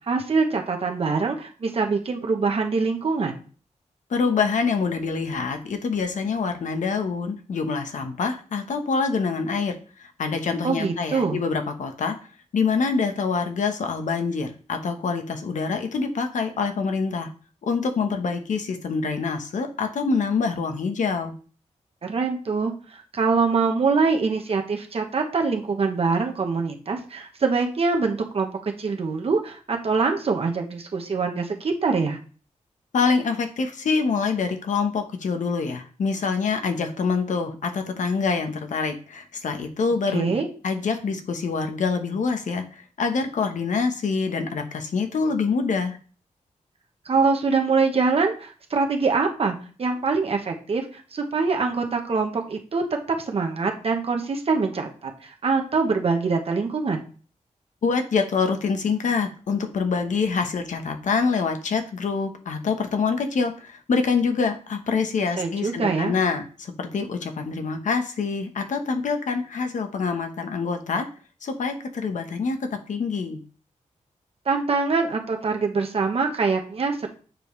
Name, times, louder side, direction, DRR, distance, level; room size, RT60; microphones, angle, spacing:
voice 1, 0.1-3.4 10.6-11.4 22.0-28.5 28.8-32.2 40.1-40.5 47.0-52.8 53.3-57.0 65.4-66.1 74.5-77.1, right 4 dB, 50° right, 2 dB, 0.9 m, -24 dB
voice 2, 4.1-12.2 12.5-17.3 17.6-21.3 32.9-40.4 40.6-46.0 57.8-71.1 71.4-73.4, left 5 dB, 75° left, 6 dB, 1.0 m, -25 dB
7.6 x 5.1 x 3.1 m, 0.40 s
wide cardioid pair, 140°, 13 cm